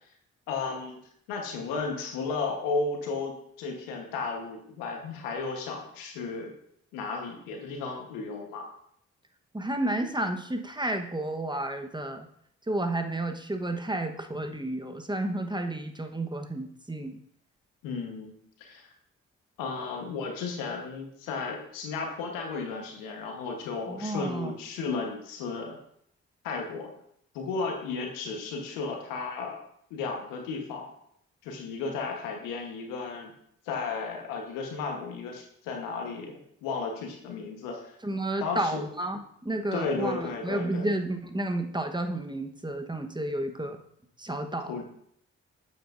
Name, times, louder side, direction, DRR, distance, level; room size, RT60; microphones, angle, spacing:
voice 1, 0.5-1.0 1.3-6.5 6.9-8.7 17.8-18.9 19.6-25.8 26.4-26.9 27.3-29.6 29.9-30.9 31.4-33.3 33.6-38.0 38.4-38.8 39.7-40.9 44.7-44.8, left 4 dB, 90° left, 2 dB, 1.3 m, -34 dB
voice 2, 9.5-12.3 12.7-17.2 23.9-24.5 38.0-43.8 44.2-44.7, right 1 dB, 15° right, 6 dB, 1.2 m, -31 dB
9.0 x 7.7 x 2.6 m, 0.69 s
hypercardioid pair, 40°, 32 cm